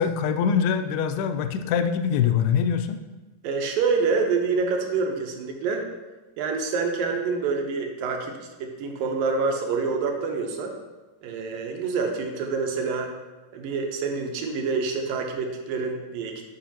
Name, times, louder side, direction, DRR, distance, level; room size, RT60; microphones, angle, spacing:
voice 1, 0.0-3.0, left 7 dB, 80° left, 8 dB, 2.3 m, -23 dB
voice 2, 3.4-5.8 6.4-8.3 8.6-10.8 11.2-13.1 13.5-16.4, right 4 dB, 75° right, 3 dB, 2.2 m, -27 dB
11.5 x 5.4 x 2.9 m, 1.2 s
omnidirectional pair, 4.4 m